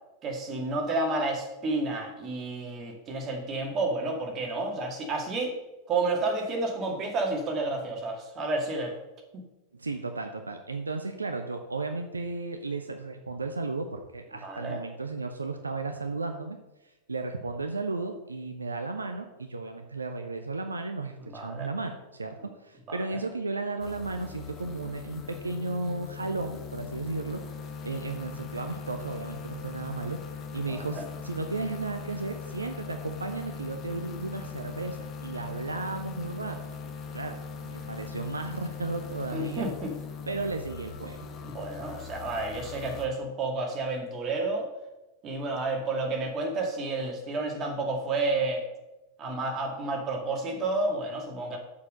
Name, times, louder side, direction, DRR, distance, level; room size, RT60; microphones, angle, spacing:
voice 1, 0.2-5.5 5.9-8.9 9.3-9.4 14.4-14.8 21.3-21.7 22.9-23.0 30.7-31.1 39.3-39.9 41.4-44.7 45.2-48.6 49.2-51.6, right 2 dB, 30° right, 2 dB, 2.2 m, -30 dB
voice 2, 9.7-16.6 16.8-27.4 27.8-30.2 30.5-36.6 37.1-39.7 40.3-41.3, right 3 dB, 80° right, 5 dB, 0.7 m, -34 dB
sound 1, 23.8-43.1, left 6 dB, 30° left, 1.4 m, -40 dB
7.1 x 6.7 x 6.4 m, 1.0 s
figure-of-eight pair, 90°, 0 cm